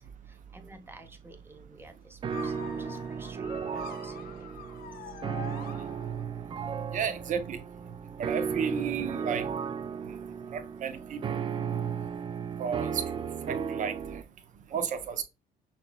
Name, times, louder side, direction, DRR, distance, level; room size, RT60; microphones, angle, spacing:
voice 1, 0.3-4.8, right 2 dB, 15° right, 0.8 m, -52 dB
sound 1, 2.2-14.2, right 7 dB, 30° right, 0.4 m, -35 dB
sound 2, 2.3-6.4, left 9 dB, 65° left, 0.6 m, -45 dB
voice 2, 6.9-7.6 8.2-9.4 10.5-11.2 12.6-13.0 13.5-13.9 14.7-15.2, right 7 dB, 50° right, 0.8 m, -32 dB
5.8 x 3.0 x 2.3 m
cardioid pair, 110°, 17 cm